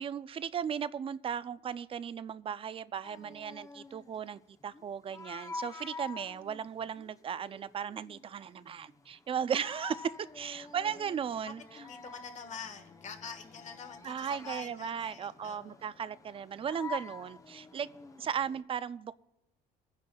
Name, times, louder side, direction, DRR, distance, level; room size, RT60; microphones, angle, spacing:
voice 1, 0.0-11.6 14.0-17.9 18.2-19.2, right 8 dB, 35° right, 16 dB, 0.4 m, -36 dB
sound 1, 3.0-18.6, left 3 dB, 20° left, 0.7 m, -48 dB
voice 2, 11.4-15.8, left 6 dB, 45° left, 7 dB, 1.5 m, -46 dB
24.5 x 10.5 x 2.3 m, 0.92 s
cardioid pair, 110°, 17 cm